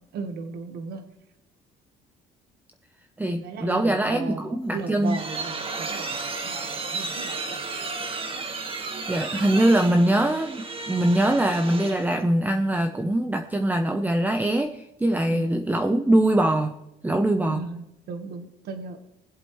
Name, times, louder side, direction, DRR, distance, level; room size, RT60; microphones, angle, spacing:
voice 1, 0.1-1.0 3.2-8.2 15.2-15.5 17.5-19.0, right 4 dB, 70° right, 7 dB, 1.3 m, -37 dB
voice 2, 3.2-5.2 9.1-16.7 17.0-17.6, right 1 dB, 10° right, 6 dB, 0.7 m, -22 dB
sound 1, 4.7-12.2, right 4 dB, 35° right, 1.5 m, -33 dB
19.0 x 7.9 x 3.1 m, 0.87 s
cardioid pair, 110°, 17 cm